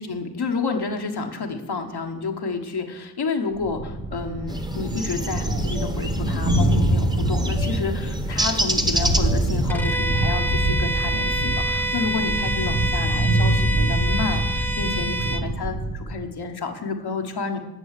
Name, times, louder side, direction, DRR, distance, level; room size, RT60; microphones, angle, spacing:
voice 1, 0.0-17.6, left 4 dB, 75° left, 4 dB, 1.4 m, -30 dB
Thunder, 3.6-16.2, right 1 dB, 75° right, 2.0 m, -24 dB
sound 1, 4.5-9.7, right 1 dB, 10° right, 1.1 m, -29 dB
Bowed string instrument, 9.7-15.5, right 1 dB, 5° left, 0.8 m, -27 dB
10.5 x 7.0 x 6.7 m, 0.99 s
cardioid pair, 45°, 40 cm